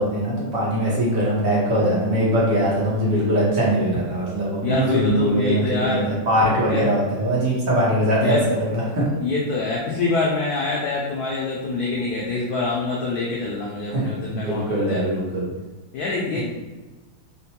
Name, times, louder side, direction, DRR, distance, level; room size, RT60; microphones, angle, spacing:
voice 1, 0.0-9.0 13.9-14.0 14.3-15.5 16.3-16.4, right 1 dB, 65° right, -6 dB, 1.6 m, -21 dB
voice 2, 4.6-6.2 6.7-6.9 8.2-8.5 9.2-15.2 15.9-16.4, left 3 dB, 85° left, -2 dB, 0.8 m, -25 dB
4.3 x 2.2 x 2.8 m, 1.2 s
omnidirectional pair, 2.2 m